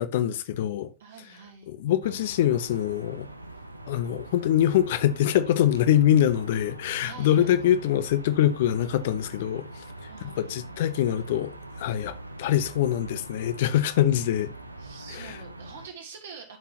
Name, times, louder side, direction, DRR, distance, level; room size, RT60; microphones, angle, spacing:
voice 1, 0.0-0.9 1.7-3.3 3.9-9.6 10.2-14.5 15.1-15.4, left 11 dB, 55° left, 0.8 m, -24 dB
voice 2, 1.0-1.7 7.0-7.6 10.1-10.7 14.8-16.6, right 5 dB, 65° right, 2.8 m, -45 dB
sound 1, 2.0-15.9, right 2 dB, 85° right, 0.7 m, -43 dB
12.0 x 5.6 x 2.9 m
figure-of-eight pair, 90°, 0 cm